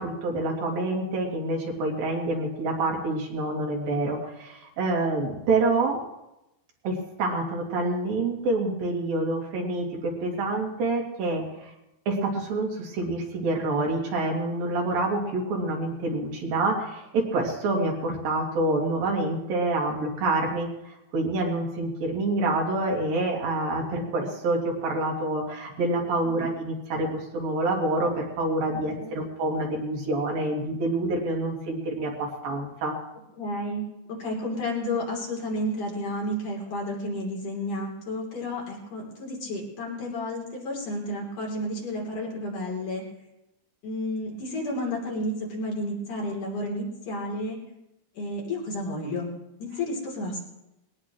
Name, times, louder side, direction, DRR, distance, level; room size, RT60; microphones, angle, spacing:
voice 1, 0.0-6.0 6.8-11.7 12.1-32.9, right 2 dB, 70° right, -1 dB, 4.3 m, -27 dB
voice 2, 28.7-29.1 33.4-33.8 34.1-43.1 43.8-47.6 48.2-49.3 49.6-50.4, left 1 dB, 55° left, -3 dB, 4.9 m, -31 dB
21.5 x 18.0 x 3.2 m, 0.90 s
omnidirectional pair, 4.3 m